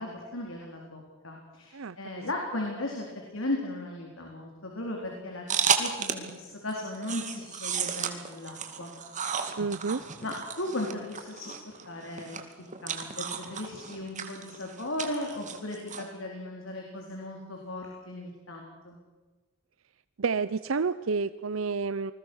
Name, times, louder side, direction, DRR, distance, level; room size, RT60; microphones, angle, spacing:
voice 1, 0.0-8.9 10.2-12.4 12.8-19.0, left 1 dB, 80° left, 0 dB, 4.1 m, -37 dB
voice 2, 1.7-2.3 9.6-10.0 20.2-22.1, right 4 dB, 85° right, 14 dB, 0.6 m, -30 dB
sound 1, 5.5-6.4 6.7-16.0, right 6 dB, 40° right, 2.3 m, -33 dB
27.5 x 21.0 x 6.4 m, 1.3 s
head